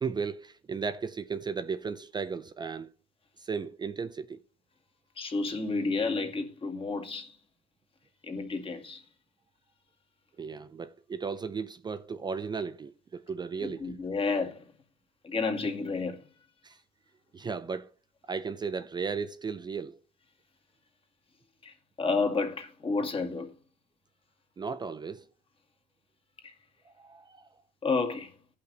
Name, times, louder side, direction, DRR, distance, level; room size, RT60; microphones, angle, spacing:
voice 1, 0.0-2.9 3.4-4.4 10.4-14.0 16.6-16.8 17.3-17.9 18.3-20.0 24.6-25.3 26.9-27.5, right 5 dB, 25° right, 0.5 m, -35 dB
voice 2, 5.2-7.4 8.2-9.0 13.6-14.6 15.2-16.2 21.6-23.5 26.4-26.5 27.8-28.3, left 4 dB, 30° left, 2.1 m, -31 dB
16.0 x 5.7 x 4.0 m
cardioid pair, 110°, 17 cm